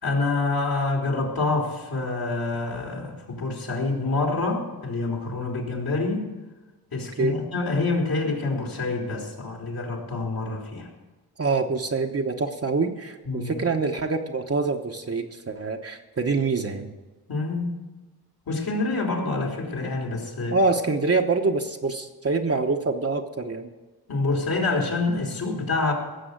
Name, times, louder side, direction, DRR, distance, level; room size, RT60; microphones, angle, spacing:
voice 1, 0.0-6.3 6.9-10.9 13.2-13.6 17.3-17.8 18.5-20.6 24.1-25.9, left 3 dB, 65° left, 0 dB, 3.4 m, -27 dB
voice 2, 11.4-16.9 20.5-23.7, right 3 dB, 35° right, 3 dB, 1.1 m, -25 dB
17.0 x 6.9 x 8.1 m, 1.2 s
cardioid pair, 80°, 39 cm